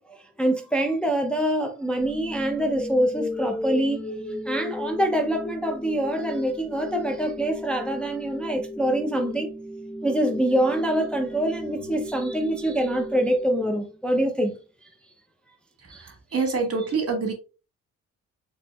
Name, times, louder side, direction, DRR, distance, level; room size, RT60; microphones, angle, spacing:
voice 1, 0.0-4.0 4.5-9.5 10.0-14.6 15.9-16.1, right 1 dB, 5° left, 0.5 m, -25 dB
sound 1, 2.0-14.0, left 1 dB, 25° left, 1.0 m, -36 dB
voice 2, 15.8-17.3, right 4 dB, 50° right, 1.4 m, -27 dB
4.3 x 2.9 x 2.3 m
cardioid pair, 90°, 30 cm